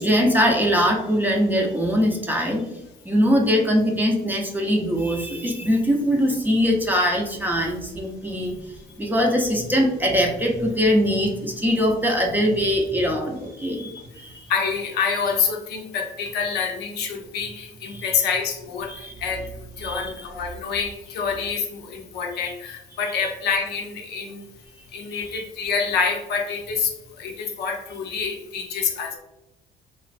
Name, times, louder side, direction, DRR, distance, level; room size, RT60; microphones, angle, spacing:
voice 1, 0.0-2.7 3.0-8.5 9.0-14.4 17.9-18.1 18.9-19.1 19.8-20.1 23.1-23.3 25.1-25.4, equal, 10° right, 0 dB, 0.5 m, -22 dB
voice 2, 14.5-18.9 19.2-19.4 19.8-24.4 24.9-26.9 27.2-29.2, left 5 dB, 75° left, 2 dB, 0.6 m, -27 dB
3.1 x 2.4 x 2.5 m, 0.91 s
cardioid pair, 110°, 17 cm